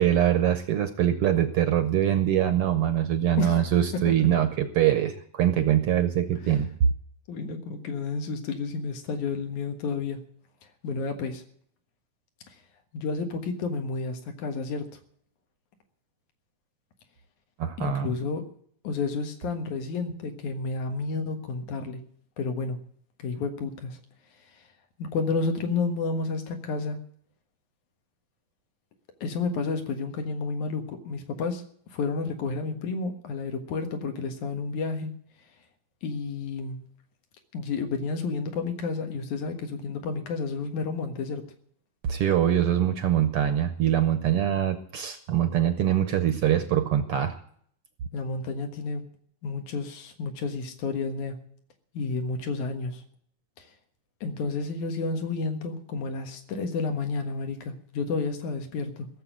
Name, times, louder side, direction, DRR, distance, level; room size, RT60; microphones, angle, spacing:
voice 1, 0.0-6.7 17.6-18.1 42.0-47.4, right 11 dB, 65° right, 9 dB, 1.6 m, -23 dB
voice 2, 3.9-4.3 6.4-6.6 7.3-10.2 10.8-11.4 12.9-14.8 17.8-18.4 18.8-22.0 22.4-22.8 23.2-24.0 25.0-27.0 29.2-31.6 31.9-35.1 36.0-36.8 37.5-41.4 48.1-49.0 49.4-51.4 51.9-53.0 53.6-53.7 54.2-59.1, left 4 dB, 80° left, 6 dB, 3.0 m, -31 dB
16.5 x 7.4 x 8.9 m, 0.62 s
omnidirectional pair, 3.4 m